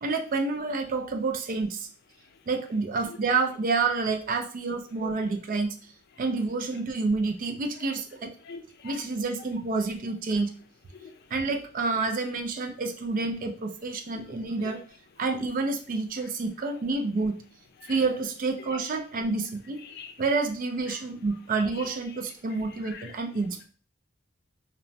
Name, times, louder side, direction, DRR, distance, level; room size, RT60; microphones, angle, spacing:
voice 1, 0.0-1.9 2.5-5.7 6.2-8.3 8.8-10.5 11.3-14.8 15.2-17.4 17.9-19.8 20.2-23.6, right 3 dB, 45° right, 4 dB, 0.4 m, -28 dB
voice 2, 8.5-9.0 10.9-11.1 14.6-14.7 17.8-18.0 18.7-18.8 19.8-20.1 20.9-21.0 21.8-21.9 22.8-23.1, left 5 dB, 55° left, 5 dB, 0.4 m, -43 dB
3.0 x 2.1 x 2.6 m, 0.41 s
head